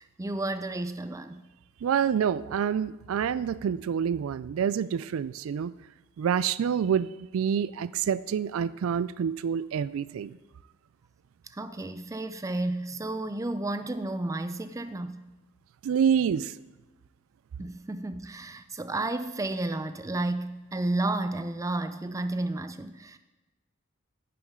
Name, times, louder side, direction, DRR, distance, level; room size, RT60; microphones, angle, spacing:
voice 1, 0.0-1.4 11.5-15.2 17.6-23.2, right 2 dB, 15° right, 11 dB, 0.4 m, -32 dB
voice 2, 1.8-5.7 6.2-10.4 15.8-16.5, right 7 dB, 90° right, 17 dB, 0.3 m, -27 dB
10.5 x 9.3 x 3.7 m, 1.1 s
head